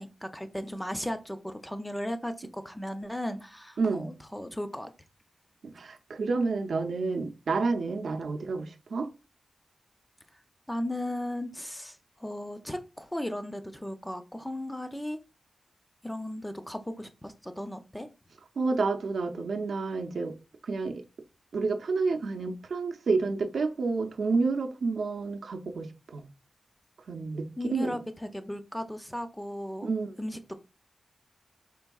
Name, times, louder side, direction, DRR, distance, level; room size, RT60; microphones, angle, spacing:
voice 1, 0.0-4.9 10.7-15.2 16.0-18.1 27.6-29.9 30.2-30.5, left 1 dB, 5° left, 0.4 m, -36 dB
voice 2, 3.8-4.1 5.7-9.1 18.6-20.3 20.6-21.0 21.5-26.2 27.1-28.0 29.8-30.1, right 4 dB, 85° right, 0.6 m, -29 dB
4.5 x 3.4 x 2.3 m
wide cardioid pair, 145°, 0 cm